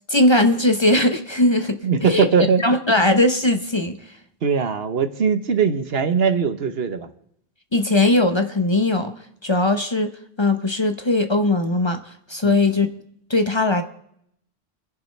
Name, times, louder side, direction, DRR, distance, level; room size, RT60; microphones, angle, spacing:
voice 1, 0.1-2.3 2.6-4.0 7.7-9.1 9.4-10.1 10.4-12.0 12.3-12.9 13.3-13.8, left 2 dB, 30° left, 7 dB, 0.8 m, -19 dB
voice 2, 1.8-2.6 4.4-7.1 12.4-12.7, right 6 dB, 70° right, 10 dB, 1.2 m, -20 dB
29.5 x 11.0 x 3.3 m, 0.72 s
omnidirectional pair, 1.1 m